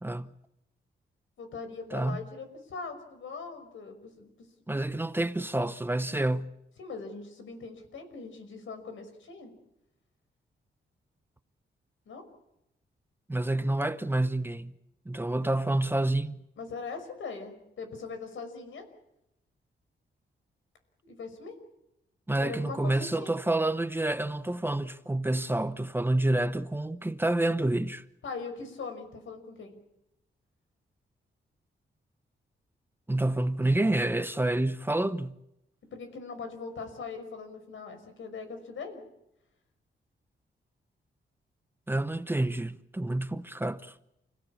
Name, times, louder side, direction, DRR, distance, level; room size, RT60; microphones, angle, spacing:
voice 1, 1.4-4.5 6.8-9.5 12.1-12.2 16.6-18.9 21.1-21.5 22.4-23.3 28.2-29.8 35.9-39.0, left 4 dB, 85° left, 5.7 m, -41 dB
voice 2, 4.7-6.5 13.3-14.7 15.1-16.4 22.3-28.0 33.1-35.3 41.9-43.9, right 1 dB, 10° right, 0.8 m, -28 dB
29.5 x 16.5 x 8.6 m
wide cardioid pair, 140°, 20 cm